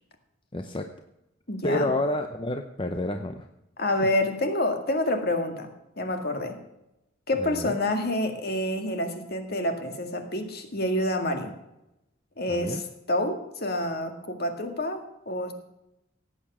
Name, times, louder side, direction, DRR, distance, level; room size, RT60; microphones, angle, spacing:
voice 1, 0.5-0.9 1.6-3.5 7.4-7.8 12.5-12.8, left 1 dB, 25° left, 6 dB, 0.7 m, -29 dB
voice 2, 1.5-1.9 3.8-5.7 6.0-6.6 7.3-11.5 12.4-15.5, left 1 dB, 50° left, 6 dB, 2.0 m, -28 dB
17.0 x 8.8 x 6.1 m, 0.89 s
head